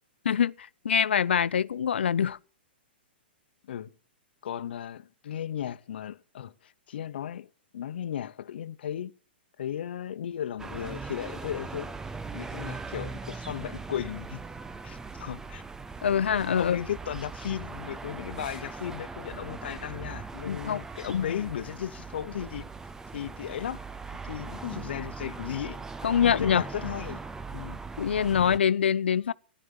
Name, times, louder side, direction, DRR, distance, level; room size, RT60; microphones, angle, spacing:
voice 1, 0.3-2.4 16.0-16.8 20.4-20.8 21.1-21.4 26.0-26.6 28.0-29.3, left 8 dB, 85° left, 0.6 m, -25 dB
voice 2, 4.4-9.1 9.6-11.9 12.3-14.4 14.8-15.6 16.5-22.7 23.1-23.8 24.2-25.8 26.2-27.2 27.5-27.8, left 10 dB, 70° left, 1.0 m, -36 dB
sound 1, 10.6-28.6, right 4 dB, 10° right, 0.6 m, -40 dB
13.0 x 11.5 x 7.2 m
hypercardioid pair, 135°, 6 cm